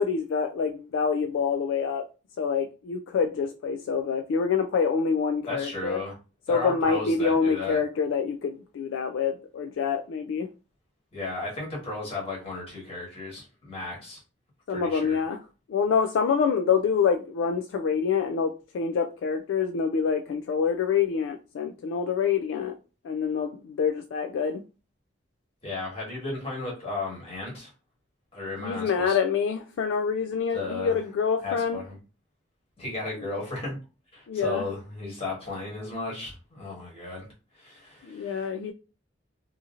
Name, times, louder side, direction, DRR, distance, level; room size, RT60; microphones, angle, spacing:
voice 1, 0.0-2.1 2.4-6.0 6.5-10.5 14.7-15.4 15.7-22.8 23.0-24.6 28.6-31.8 33.2-33.3 34.3-34.6 38.0-38.7, left 6 dB, 75° left, 0.3 m, -26 dB
voice 2, 5.5-6.1 6.5-7.8 11.1-14.2 14.7-15.2 25.6-27.7 28.3-29.2 30.5-31.0 31.4-32.0 32.8-33.8 34.1-37.3 37.5-38.5, left 2 dB, 30° left, 1.4 m, -34 dB
2.8 x 2.7 x 2.4 m
head